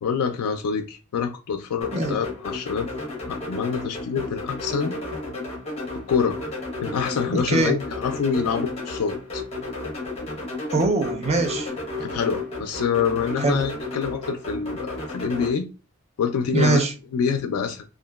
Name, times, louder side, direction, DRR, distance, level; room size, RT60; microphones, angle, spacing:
voice 1, 0.0-2.9 3.3-5.0 5.9-6.4 6.8-9.4 12.0-15.7 16.2-16.9 17.1-17.8, left 6 dB, 90° left, 0.3 m, -26 dB
sound 1, 1.8-15.5, left 2 dB, 30° left, 1.0 m, -33 dB
voice 2, 7.3-7.8 10.7-11.7 13.4-13.6 16.5-16.9, right 3 dB, 30° right, 0.5 m, -22 dB
2.8 x 2.4 x 2.2 m
head